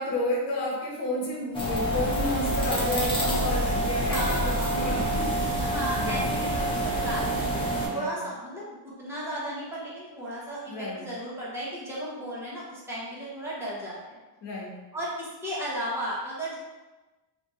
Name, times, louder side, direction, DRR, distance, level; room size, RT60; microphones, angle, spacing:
voice 1, 0.0-5.5 6.0-6.2 7.9-8.2 10.7-11.1 14.4-14.8, left 1 dB, 70° left, -3 dB, 1.1 m, -31 dB
sound 1, 1.5-7.9, right 1 dB, 10° left, 0.6 m, -27 dB
voice 2, 2.9-3.5 4.1-5.2 5.6-14.2 14.9-16.6, equal, 5° right, -8 dB, 1.1 m, -35 dB
2.8 x 2.5 x 3.7 m, 1.2 s
cardioid pair, 140°, 44 cm